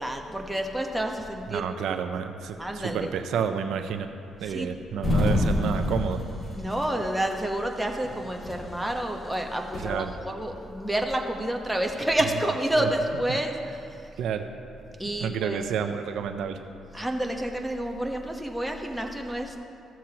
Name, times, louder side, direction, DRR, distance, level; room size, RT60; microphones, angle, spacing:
voice 1, 0.0-1.7 2.6-3.1 4.4-4.7 6.5-13.5 13.9-14.1 15.0-15.6 16.9-19.6, right 1 dB, 5° right, 2 dB, 1.0 m, -29 dB
voice 2, 1.5-4.1 4.4-6.2 9.8-10.1 12.8-12.9 13.3-13.4 14.2-14.5 15.2-16.6, right 7 dB, 80° right, 8 dB, 0.5 m, -30 dB
sound 1, 5.0-7.0 7.3-7.4 8.0-8.7 9.5-9.9, left 1 dB, 25° left, 1.4 m, -26 dB
15.0 x 7.3 x 2.9 m, 2.6 s
cardioid pair, 90°, 0 cm